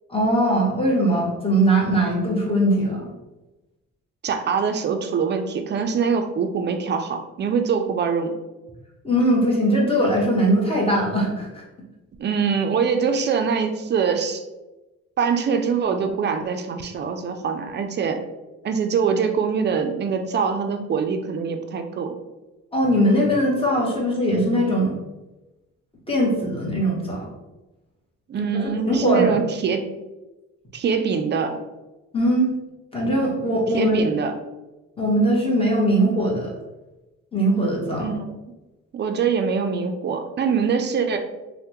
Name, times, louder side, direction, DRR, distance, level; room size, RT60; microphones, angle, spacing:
voice 1, 0.1-3.1 9.0-11.6 22.7-24.9 26.1-27.3 28.4-29.3 32.1-32.5 32.9-34.0 35.0-36.5 37.3-38.1, right 1 dB, 20° left, -3 dB, 1.0 m, -20 dB
voice 2, 4.2-8.3 12.2-14.4 15.2-18.2 18.6-22.1 28.3-29.9 30.7-31.6 33.7-34.3 38.0-38.2 38.9-41.2, right 6 dB, 35° right, 6 dB, 0.4 m, -23 dB
3.3 x 2.1 x 2.9 m, 1.1 s
cardioid pair, 90°, 30 cm